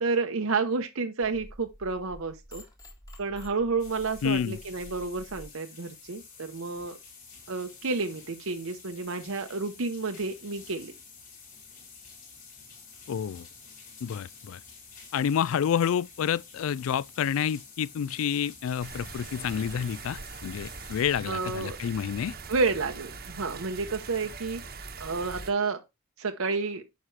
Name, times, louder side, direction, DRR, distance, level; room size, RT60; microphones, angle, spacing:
voice 1, 0.0-2.6 3.2-7.0 7.5-10.9 21.3-21.8 22.5-24.6 25.0-25.8 26.2-26.8, right 4 dB, 80° right, 0.8 m, -30 dB
sound 1, 1.2-5.5, equal, 15° left, 1.7 m, -49 dB
sound 2, 3.8-21.0, left 5 dB, 35° left, 3.9 m, -50 dB
voice 2, 4.2-4.6 13.1-13.5 14.0-14.6 15.1-22.4, left 8 dB, 75° left, 0.3 m, -29 dB
sound 3, 18.8-25.5, right 4 dB, 45° right, 1.1 m, -42 dB
9.4 x 5.7 x 3.2 m
head